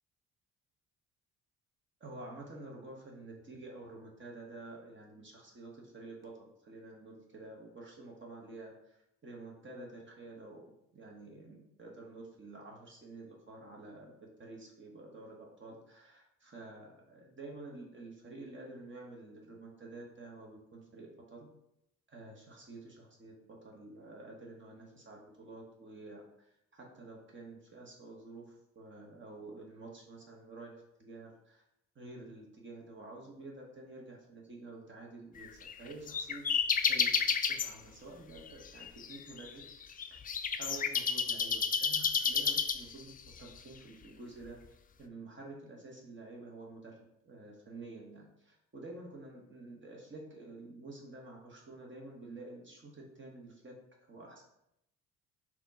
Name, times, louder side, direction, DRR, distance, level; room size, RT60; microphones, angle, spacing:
voice 1, 2.0-21.5 22.1-23.3 23.6-31.6 31.9-36.4 36.8-37.1 37.4-39.6 40.1-40.2 40.6-43.1 43.4-44.6 45.0-54.4, right 2 dB, 40° right, -2 dB, 1.3 m, -49 dB
sound 1, 35.4-37.7 38.4-43.2, left 6 dB, 30° left, 0.4 m, -31 dB
4.1 x 3.0 x 4.1 m, 0.81 s
supercardioid pair, 65°, 31 cm